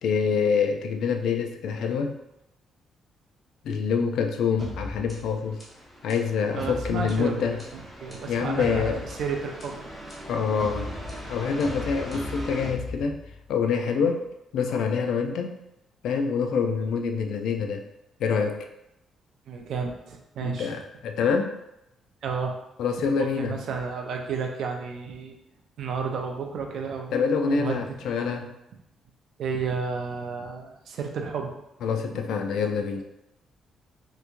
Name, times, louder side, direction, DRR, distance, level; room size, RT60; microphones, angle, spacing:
voice 1, 0.0-2.2 3.6-5.6 6.0-7.6 8.3-9.0 10.3-10.9 11.3-13.2 13.5-14.2 14.5-15.6 16.0-17.8 18.2-18.7 20.4-21.6 22.8-23.6 27.1-28.5 31.8-33.0, left 6 dB, 70° left, 5 dB, 0.3 m, -26 dB
sound 1, 4.6-13.5, left 1 dB, 10° left, 0.8 m, -38 dB
voice 2, 6.6-7.4 7.7-8.9 9.2-10.1 13.9-14.1 19.5-20.7 22.2-22.6 23.2-25.4 25.8-27.2 27.4-27.9 29.4-31.5, right 5 dB, 55° right, 2 dB, 0.5 m, -32 dB
3.4 x 2.9 x 2.5 m, 0.86 s
cardioid pair, 180°, 0 cm